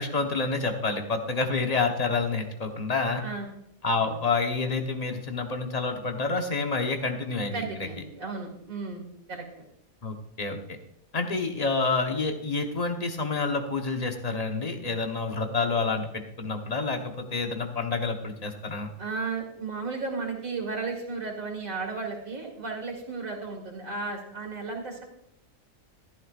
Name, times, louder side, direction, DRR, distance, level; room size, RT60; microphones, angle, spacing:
voice 1, 0.0-3.2 3.8-7.9 10.0-10.6 11.1-18.9, left 4 dB, 30° left, 4 dB, 1.2 m, -28 dB
voice 2, 7.5-9.6 19.0-25.0, right 4 dB, 90° right, 1 dB, 2.6 m, -34 dB
14.5 x 11.0 x 2.5 m, 0.79 s
omnidirectional pair, 1.4 m